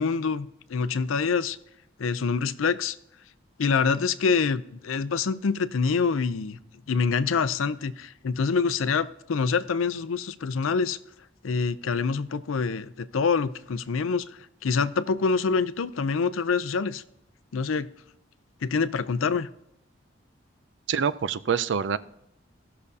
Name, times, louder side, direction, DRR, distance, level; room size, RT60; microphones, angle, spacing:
voice 1, 0.0-1.6 2.0-3.0 3.6-6.6 6.9-11.0 11.4-17.0 17.5-17.9 18.6-19.5, left 5 dB, 90° left, 14 dB, 0.5 m, -26 dB
voice 2, 20.9-22.0, right 7 dB, 65° right, 16 dB, 0.4 m, -25 dB
17.5 x 6.6 x 2.7 m, 0.81 s
head